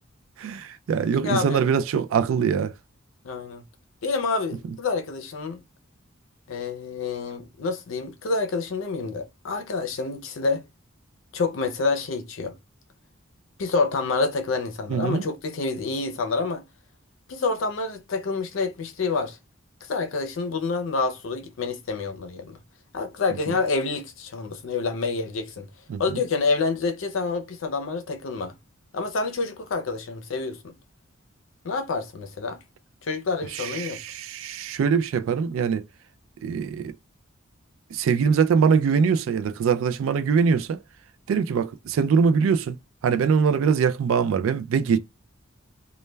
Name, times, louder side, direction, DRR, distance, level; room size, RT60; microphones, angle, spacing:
voice 1, 0.4-2.7 14.9-15.2 25.9-26.0 33.5-35.8 36.4-36.9 37.9-40.8 41.3-42.8 43.0-45.0, right 6 dB, 80° right, 0.3 m, -22 dB
voice 2, 1.1-1.7 3.2-3.6 4.0-5.6 6.5-10.6 11.3-12.6 13.6-16.6 17.3-19.4 19.9-22.6 22.9-25.7 26.0-28.5 28.9-30.7 31.6-32.6 33.1-34.0, left 4 dB, 75° left, 0.5 m, -28 dB
2.2 x 2.2 x 3.1 m
head